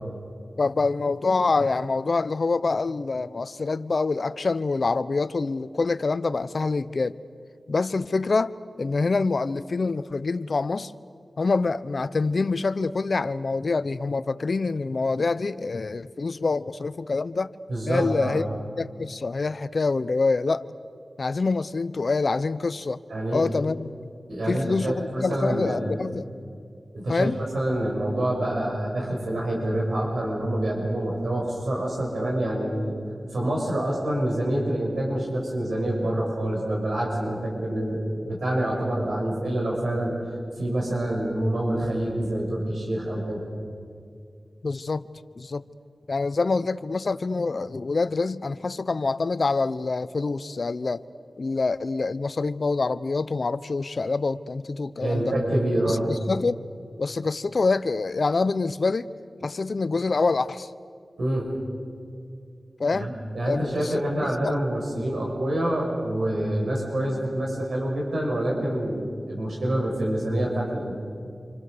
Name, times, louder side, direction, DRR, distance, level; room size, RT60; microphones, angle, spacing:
voice 1, 0.6-7.2 7.7-10.9 11.4-17.5 17.9-18.5 18.8-20.7 21.2-23.0 23.3-23.9 24.5-26.3 27.1-27.4 44.6-45.0 45.4-45.6 46.1-51.0 51.4-55.2 55.9-56.6 57.0-59.1 59.4-60.7 62.8-63.1 63.4-63.9 64.2-64.5, left 3 dB, 65° left, 0.8 m, -26 dB
voice 2, 17.7-18.5 23.1-23.4 24.3-26.0 26.9-27.3 27.5-32.9 33.3-40.2 40.6-43.4 55.0-56.1 61.2-61.5 62.9-71.0, right 1 dB, 90° right, 6.6 m, -26 dB
28.0 x 27.5 x 6.8 m
cardioid pair, 55°, 0 cm